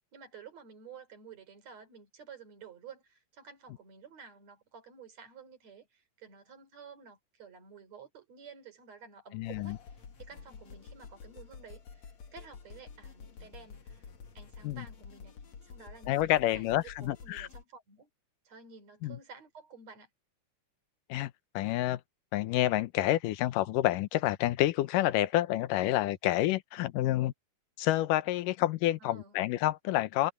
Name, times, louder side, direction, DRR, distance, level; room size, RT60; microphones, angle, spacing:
voice 1, 0.1-14.1 14.3-15.4 15.6-18.1 18.4-20.1 29.0-29.3, right 6 dB, 55° right, 4.9 m, -52 dB
voice 2, 9.3-9.8 14.6-14.9 16.1-17.5 19.0-19.2 21.1-22.0 22.3-27.3 27.8-30.3, left 15 dB, 90° left, 2.5 m, -28 dB
sound 1, 9.4-17.6, left 5 dB, 60° left, 3.4 m, -50 dB
omnidirectional pair, 3.7 m